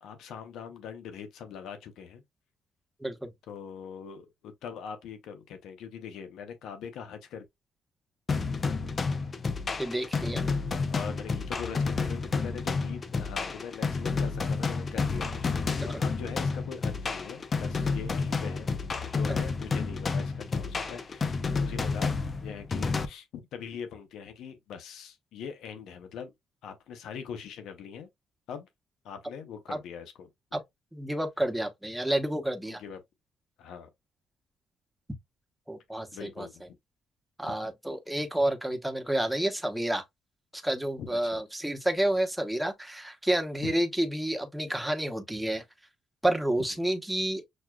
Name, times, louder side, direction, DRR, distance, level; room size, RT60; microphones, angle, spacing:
voice 1, 0.0-2.2 3.5-7.4 10.7-18.7 19.1-26.3 26.6-28.1 28.5-28.7 29.0-30.3 32.6-33.0 33.6-33.9 36.1-36.8 37.5-37.6 41.0-41.4 43.6-43.7, left 7 dB, 85° left, 0.7 m, -42 dB
sound 1, 8.3-23.1, left 4 dB, 40° left, 0.5 m, -30 dB
voice 2, 9.8-10.4 15.8-15.9 29.7-29.8 30.5-30.6 30.9-32.8 35.7-36.5 37.4-40.0 40.6-45.6 46.2-47.4, right 1 dB, 5° right, 1.0 m, -29 dB
6.2 x 2.3 x 2.3 m
cardioid pair, 90°, 0 cm